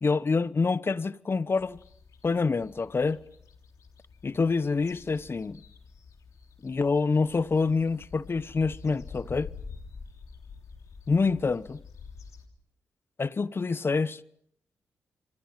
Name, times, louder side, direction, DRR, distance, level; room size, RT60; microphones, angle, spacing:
voice 1, 0.0-1.8 2.2-3.2 4.2-5.6 6.6-9.5 11.1-11.8 13.2-14.2, left 4 dB, 45° left, 1.0 m, -26 dB
sound 1, 1.6-12.5, left 5 dB, 70° left, 3.3 m, -48 dB
27.5 x 24.5 x 5.8 m
supercardioid pair, 40°, 6 cm